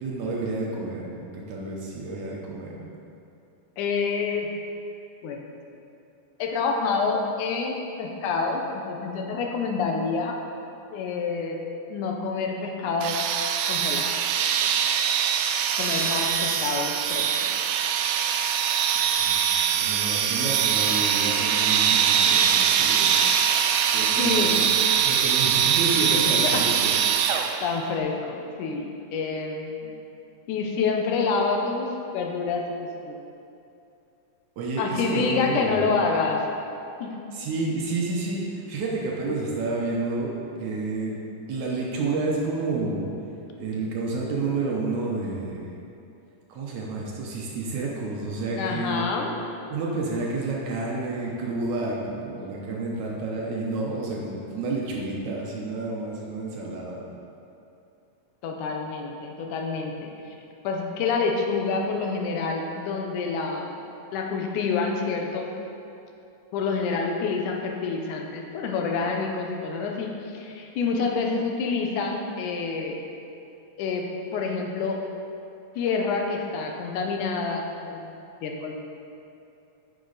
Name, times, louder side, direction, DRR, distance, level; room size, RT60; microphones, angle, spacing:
voice 1, 0.0-2.9 19.0-19.4 19.7-23.2 23.9-24.7 25.1-26.8 34.6-36.0 37.3-41.2 41.5-43.1 43.6-45.7 46.5-49.1 49.7-57.1, right 3 dB, 70° right, -3 dB, 2.1 m, -30 dB
voice 2, 3.8-4.5 5.2-5.4 6.4-10.3 10.9-11.6 11.9-13.2 13.7-14.2 15.7-17.5 19.8-19.9 24.2-24.7 26.4-26.6 27.1-29.9 30.5-31.9 32.1-33.1 34.8-36.4 37.0-37.1 48.6-49.3 58.4-60.1 60.6-63.7 64.1-65.5 66.5-73.0 73.8-74.1 74.3-75.0 75.8-78.1 78.4-78.7, left 4 dB, 75° left, 1 dB, 2.2 m, -27 dB
sound 1, 13.0-27.8, right 8 dB, 85° right, 2.2 m, -23 dB
9.7 x 6.2 x 4.0 m, 2.7 s
omnidirectional pair, 3.8 m